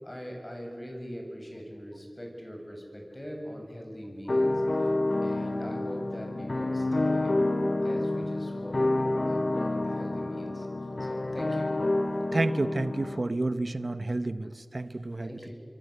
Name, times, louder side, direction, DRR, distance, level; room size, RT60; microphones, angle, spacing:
voice 1, 0.0-4.6 5.2-7.4 7.8-8.9 9.3-10.7 11.0-11.8 15.2-15.5, equal, 25° left, 1 dB, 7.9 m, -41 dB
sound 1, 4.3-13.2, left 2 dB, 60° left, 1.0 m, -28 dB
voice 2, 12.3-15.5, right 2 dB, 65° right, 12 dB, 1.0 m, -30 dB
28.0 x 24.0 x 8.3 m, 2.1 s
wide cardioid pair, 50°, 0 cm